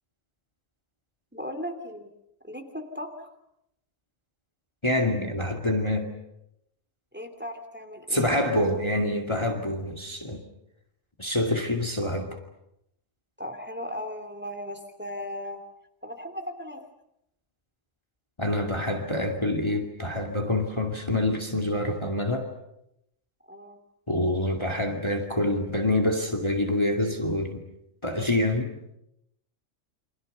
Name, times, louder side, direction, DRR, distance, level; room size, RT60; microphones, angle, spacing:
voice 1, 1.3-2.1 2.4-3.3 7.1-8.3 13.4-15.6 16.0-16.8 23.5-23.8, left 1 dB, 10° right, 6 dB, 2.9 m, -37 dB
voice 2, 4.8-6.1 8.1-10.4 11.2-12.4 18.4-22.5 24.1-27.6 28.0-28.7, left 1 dB, 20° left, 3 dB, 2.5 m, -26 dB
29.5 x 25.5 x 6.9 m, 0.80 s
omnidirectional pair, 1.3 m